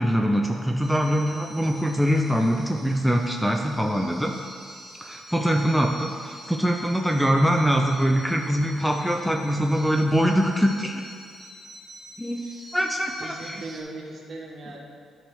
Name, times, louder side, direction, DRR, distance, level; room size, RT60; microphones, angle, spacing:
voice 1, 0.0-4.4 5.0-11.0 12.2-13.6, equal, ahead, 2 dB, 0.5 m, -23 dB
sound 1, 0.8-13.8, right 1 dB, 30° right, 1.5 m, -45 dB
voice 2, 13.2-14.8, right 2 dB, 50° right, -2 dB, 1.6 m, -38 dB
10.0 x 3.4 x 6.2 m, 2.1 s
cardioid pair, 90°, 0 cm